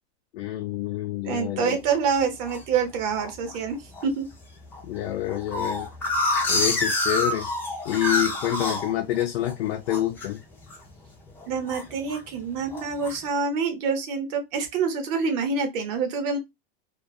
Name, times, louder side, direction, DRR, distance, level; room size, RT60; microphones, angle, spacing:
voice 1, 0.3-1.8 4.8-5.9 6.5-7.5 7.9-10.4, left 13 dB, 90° left, 0.6 m, -27 dB
voice 2, 1.2-3.8 4.0-4.3 11.5-16.4, right 5 dB, 40° right, 0.8 m, -26 dB
sound 1, 1.9-2.6 3.2-3.6 4.0-4.1 4.3-4.4 4.7-9.5 9.9-10.3 10.6-10.9 11.3-12.2 12.7-13.2, left 2 dB, 5° left, 0.3 m, -27 dB
2.3 x 2.2 x 2.6 m
supercardioid pair, 165°, 31 cm